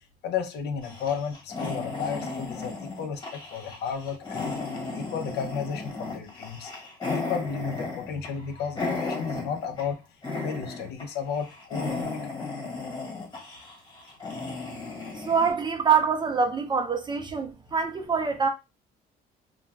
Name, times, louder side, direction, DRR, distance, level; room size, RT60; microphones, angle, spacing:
voice 1, 0.2-4.6 4.9-6.7 7.0-10.0 10.4-12.4, left 6 dB, 75° left, 0.6 m, -33 dB
sound 1, 0.8-9.9 10.2-11.0 11.3-15.5, left 3 dB, 25° left, 1.4 m, -35 dB
voice 2, 15.2-18.5, right 6 dB, 25° right, 0.4 m, -25 dB
2.4 x 2.1 x 3.3 m
cardioid pair, 110°, 17 cm